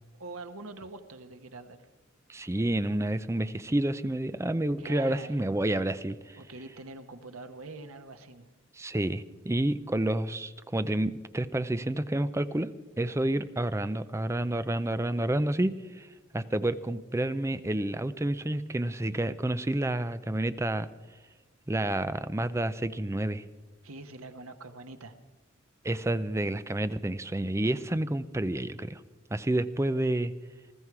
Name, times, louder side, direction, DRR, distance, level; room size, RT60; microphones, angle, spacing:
voice 1, 0.2-1.9 4.8-5.4 6.4-8.4 23.8-25.2, right 3 dB, 90° right, 8 dB, 1.2 m, -44 dB
voice 2, 2.3-6.4 8.8-12.7 13.0-16.1 16.3-20.9 21.7-23.4 25.8-29.0 29.3-30.3, right 1 dB, 15° right, 13 dB, 0.5 m, -29 dB
20.0 x 14.0 x 4.8 m, 1.2 s
head